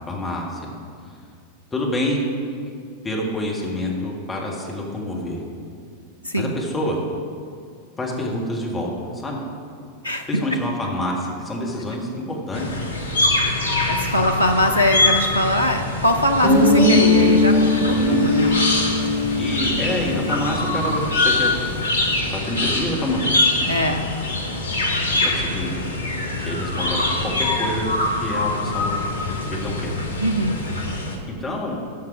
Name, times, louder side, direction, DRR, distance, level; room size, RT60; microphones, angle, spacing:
voice 1, 0.1-0.7 1.7-2.2 3.0-5.4 6.4-7.0 8.0-9.4 10.3-12.6 18.0-18.5 19.4-21.5 22.3-23.4 25.2-25.7 26.4-27.9 28.2-29.0 29.5-29.9 31.4-31.8, left 1 dB, 15° left, -2 dB, 1.8 m, -27 dB
voice 2, 10.0-10.6 13.9-18.5 23.7-24.1 30.2-30.6, equal, 90° right, 5 dB, 0.4 m, -22 dB
sound 1, 12.5-31.2, left 2 dB, 70° left, 1.1 m, -24 dB
Guitar, 16.4-21.0, left 2 dB, 40° right, 2.1 m, -19 dB
13.0 x 5.9 x 4.8 m, 2.3 s
figure-of-eight pair, 90°, 0 cm